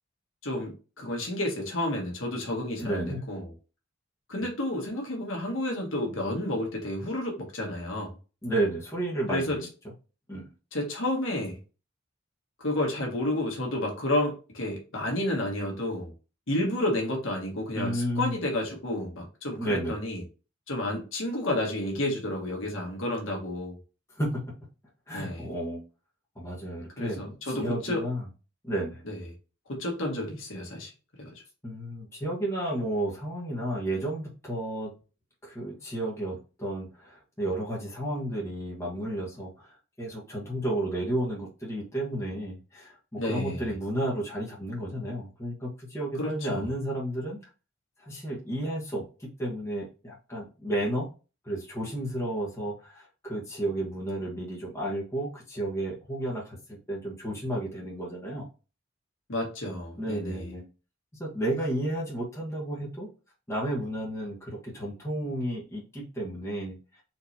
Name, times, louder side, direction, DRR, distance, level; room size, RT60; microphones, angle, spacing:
voice 1, 0.4-3.5 4.3-8.1 9.3-9.6 10.7-11.6 12.6-16.1 16.5-20.2 20.7-23.7 25.1-25.5 27.0-28.0 29.0-29.2 29.7-30.9 31.2-31.3 43.2-43.8 46.1-46.6 59.3-60.5, left 1 dB, 75° left, 0 dB, 1.5 m, -31 dB
voice 2, 2.8-3.3 8.4-9.7 10.3-10.5 17.7-18.4 19.6-19.9 24.2-24.4 25.1-25.8 26.3-28.3 28.6-29.0 31.6-34.9 35.4-39.7 40.0-47.4 48.0-51.1 51.4-58.5 60.0-60.6 61.2-63.1 63.5-66.8, right 1 dB, 15° left, -5 dB, 1.4 m, -32 dB
4.3 x 3.1 x 2.7 m, 0.33 s
head